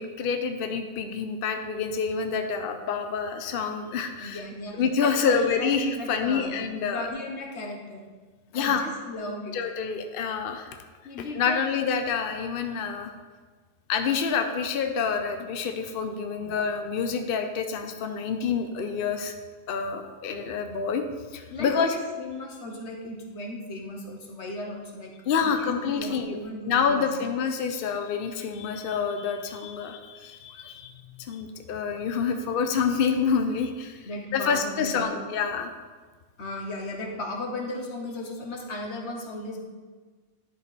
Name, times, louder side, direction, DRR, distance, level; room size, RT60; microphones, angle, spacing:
voice 1, 0.0-4.4 4.7-7.1 8.5-8.9 9.5-10.8 11.3-13.1 13.9-19.3 19.7-21.0 21.3-21.9 25.3-26.4 26.6-30.9 31.2-35.7, left 6 dB, 60° left, 6 dB, 0.8 m, -27 dB
voice 2, 4.2-6.5 6.9-8.0 8.5-9.6 11.0-11.6 16.3-16.6 16.9-17.0 21.5-25.1 25.4-27.1 30.8-31.2 33.6-33.7 34.0-35.2 36.4-39.6, left 2 dB, 90° left, 1 dB, 1.4 m, -36 dB
11.0 x 4.9 x 4.1 m, 1.4 s
omnidirectional pair, 1.1 m